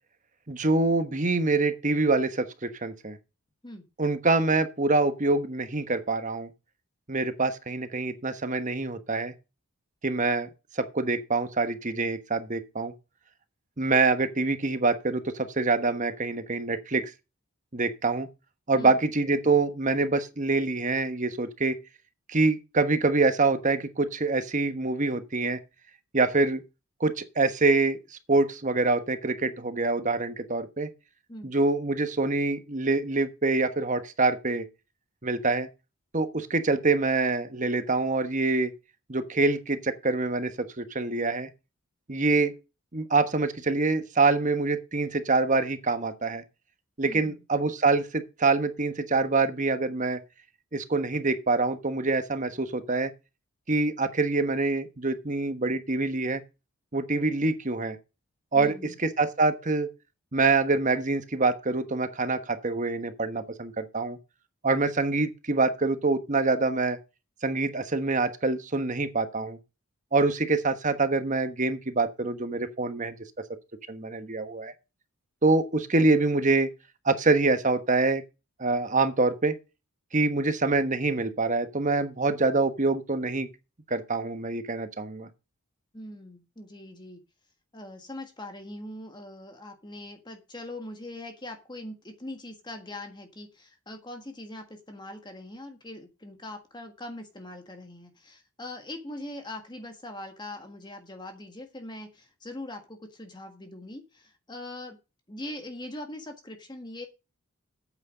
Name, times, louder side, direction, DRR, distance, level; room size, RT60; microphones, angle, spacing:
voice 1, 0.5-3.2 4.0-6.5 7.1-9.3 10.0-10.5 10.7-12.9 13.8-17.1 17.7-18.3 18.7-21.8 22.3-25.6 26.1-26.6 27.0-28.0 28.3-30.9 31.4-34.7 35.2-35.7 36.1-38.7 39.1-41.5 42.1-42.5 42.9-46.4 47.0-50.2 50.7-53.1 53.7-56.4 56.9-58.0 58.5-59.9 60.3-64.2 64.6-67.0 67.4-69.6 70.1-73.1 73.9-74.7 75.4-76.7 77.0-78.2 78.6-79.5 80.1-83.5 83.9-85.3, right 3 dB, 35° right, 1.2 m, -25 dB
voice 2, 47.0-47.4 58.5-59.0 85.9-87.2 87.7-105.0 105.3-107.1, left 1 dB, 20° left, 1.6 m, -41 dB
9.4 x 8.5 x 5.1 m
head